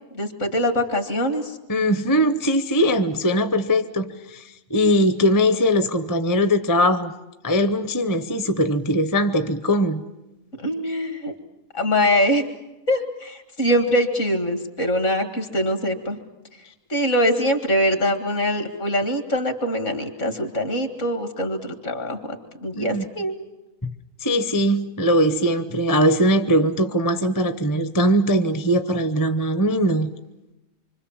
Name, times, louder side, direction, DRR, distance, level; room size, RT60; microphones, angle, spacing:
voice 1, 0.1-1.6 10.6-11.3 11.7-12.5 12.9-16.2 16.9-23.4, equal, 60° left, 2.3 m, -23 dB
voice 2, 1.7-4.4 4.7-7.1 7.4-10.0 22.8-23.0 23.8-23.9 24.2-30.1, equal, 20° left, 0.7 m, -20 dB
25.5 x 25.0 x 7.2 m
omnidirectional pair, 1.5 m